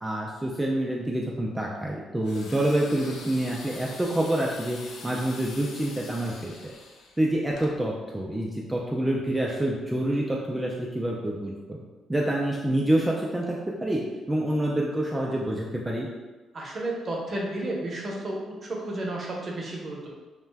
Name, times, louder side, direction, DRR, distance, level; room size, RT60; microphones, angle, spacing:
voice 1, 0.0-6.7 7.2-11.8 12.1-14.0 14.3-16.1, right 1 dB, 10° right, -3 dB, 0.3 m, -27 dB
sound 1, 2.2-7.8, left 3 dB, 75° left, 0.4 m, -44 dB
voice 2, 16.5-20.1, right 1 dB, 40° right, -2 dB, 0.7 m, -32 dB
2.4 x 2.1 x 3.3 m, 1.2 s
cardioid pair, 90°, 0 cm